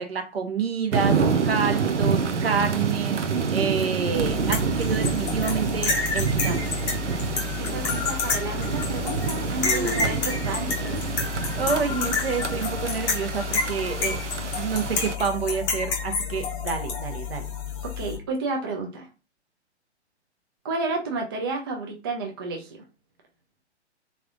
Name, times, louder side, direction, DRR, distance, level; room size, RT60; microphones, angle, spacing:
voice 1, 0.0-6.7 9.6-10.2 11.5-17.5, right 6 dB, 60° right, 1.0 m, -29 dB
sound 1, 0.9-15.2, right 5 dB, 85° right, 0.6 m, -27 dB
sound 2, 4.2-18.2, left 5 dB, 15° left, 0.7 m, -29 dB
voice 2, 7.6-11.0 17.8-19.1 20.6-22.8, right 3 dB, 20° right, 0.4 m, -31 dB
3.6 x 3.3 x 2.5 m
figure-of-eight pair, 125°, 34 cm